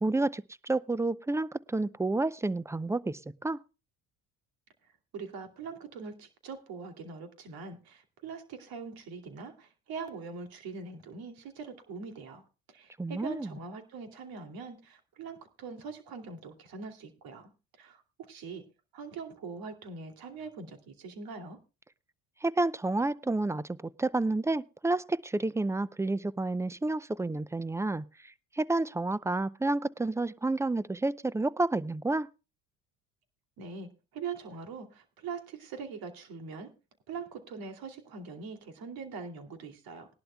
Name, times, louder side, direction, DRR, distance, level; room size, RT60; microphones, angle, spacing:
voice 1, 0.0-3.6 13.0-13.5 22.4-32.3, right 2 dB, 5° right, 19 dB, 0.5 m, -30 dB
voice 2, 5.1-12.4 12.7-17.5 17.8-18.0 18.3-18.6 18.9-21.6 33.6-36.7 37.1-40.2, right 5 dB, 65° right, 6 dB, 2.8 m, -42 dB
19.5 x 11.5 x 2.3 m, 0.30 s
supercardioid pair, 85°, 39 cm